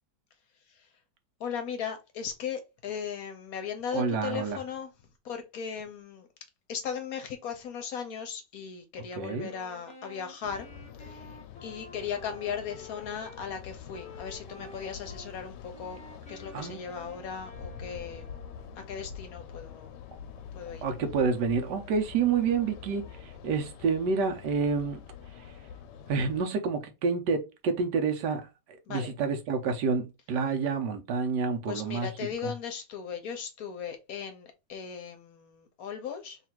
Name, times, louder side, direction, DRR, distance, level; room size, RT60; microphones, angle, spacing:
voice 1, 1.4-4.9 5.2-6.3 6.7-10.7 11.0-16.0 16.3-18.2 18.9-19.9 20.5-20.8 28.9-29.1 31.7-36.4, left 7 dB, 65° left, 1.1 m, -37 dB
voice 2, 3.9-4.6 9.2-9.5 16.5-16.8 20.8-25.0 25.4-25.5 26.1-32.1 32.4-32.5, right 5 dB, 90° right, 1.4 m, -29 dB
Wind instrument woodwind instrument, 9.2-13.4 13.9-15.3 15.7-18.9, left 1 dB, 5° left, 0.7 m, -50 dB
Tel Aviv Israel - Street ambience during summer afternoon, 10.4-26.4, left 7 dB, 90° left, 1.2 m, -46 dB
3.3 x 2.5 x 4.4 m
omnidirectional pair, 1.8 m